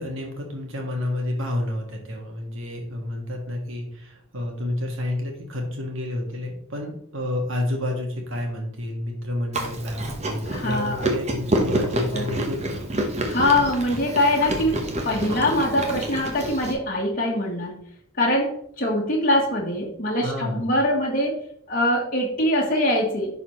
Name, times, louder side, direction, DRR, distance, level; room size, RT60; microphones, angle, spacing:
voice 1, 0.0-12.8 20.2-20.7, left 1 dB, 65° right, 1 dB, 1.8 m, -30 dB
Chewing mastication, 9.5-16.7, right 1 dB, 30° right, 1.0 m, -28 dB
voice 2, 10.5-11.1 12.1-12.3 13.3-14.7 15.0-17.8 18.2-21.4 21.7-23.4, left 1 dB, 40° left, -2 dB, 1.3 m, -23 dB
11.0 x 4.1 x 3.1 m, 0.68 s
head